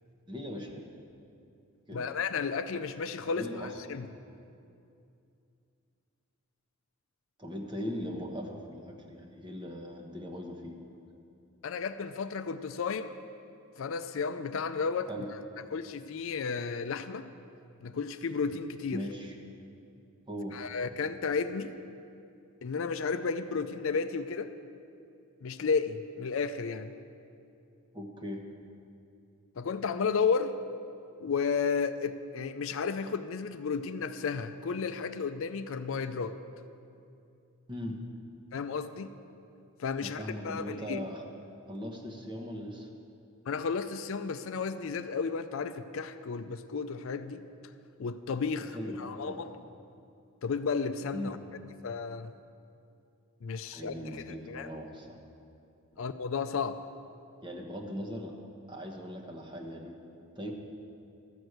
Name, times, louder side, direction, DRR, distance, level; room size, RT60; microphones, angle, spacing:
voice 1, 0.3-0.7 1.9-2.1 3.3-3.7 7.4-10.8 15.1-15.3 18.9-19.4 20.3-20.6 27.9-28.4 37.7-38.0 40.0-41.2 41.7-42.9 48.7-49.5 51.1-51.4 53.7-55.2 56.0-56.1 57.4-58.3 58.7-60.0 60.4-60.5, equal, 20° right, 1 dB, 1.1 m, -39 dB
voice 2, 1.9-4.1 11.6-13.1 13.8-15.1 15.7-17.3 17.8-19.0 20.5-21.7 22.6-24.5 25.4-26.9 29.6-30.6 31.2-36.4 38.5-39.1 39.8-41.0 43.5-47.5 48.0-49.5 50.4-51.4 51.8-52.3 53.4-54.7 56.0-56.8, left 5 dB, 65° left, 10 dB, 0.4 m, -33 dB
13.0 x 6.2 x 8.0 m, 2.6 s
head